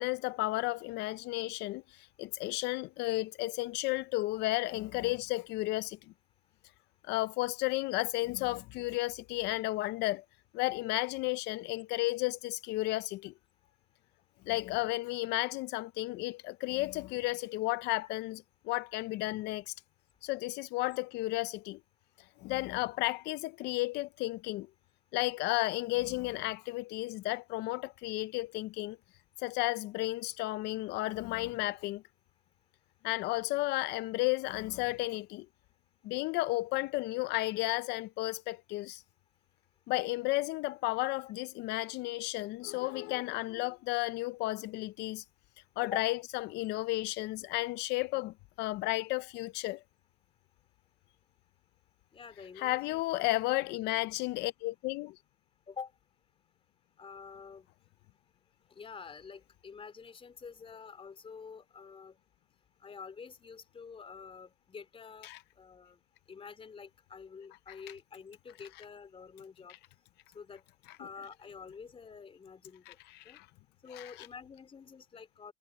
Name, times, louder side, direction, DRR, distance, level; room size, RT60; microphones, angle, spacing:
voice 1, 0.0-6.0 7.0-10.2 10.5-13.3 14.5-19.7 20.2-21.8 22.4-24.7 25.1-29.0 29.4-32.0 33.0-35.5 36.0-39.0 39.9-45.2 45.8-49.8 52.6-55.2 65.2-65.4 69.7-69.8 72.9-73.5 73.9-74.3, left 19 dB, 90° left, 0.5 m, -33 dB
voice 2, 52.1-53.0 55.7-55.9 57.0-57.7 58.8-62.1 62.8-65.3 65.6-66.0 66.3-69.8 70.3-70.6 71.0-72.8 73.3-73.4 73.8-75.5, left 6 dB, 35° left, 3.8 m, -47 dB
cardioid pair, 110°, 17 cm